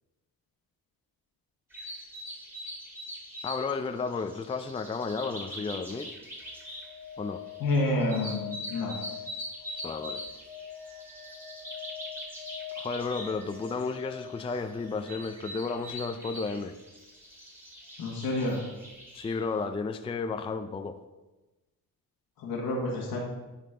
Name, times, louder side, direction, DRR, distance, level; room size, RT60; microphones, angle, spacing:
sound 1, 1.7-19.4, equal, 5° right, 2.1 m, -43 dB
voice 1, 3.4-6.1 7.2-7.4 9.8-10.2 12.8-16.7 19.1-21.0, left 4 dB, 15° left, 8 dB, 0.4 m, -33 dB
sound 2, 6.3-16.1 18.5-18.6, left 10 dB, 75° right, 2.5 m, -45 dB
voice 2, 7.6-8.9 18.0-18.6 22.4-23.2, left 2 dB, 80° left, -2 dB, 1.7 m, -29 dB
10.0 x 4.1 x 3.7 m, 1.1 s
cardioid pair, 80°, 35 cm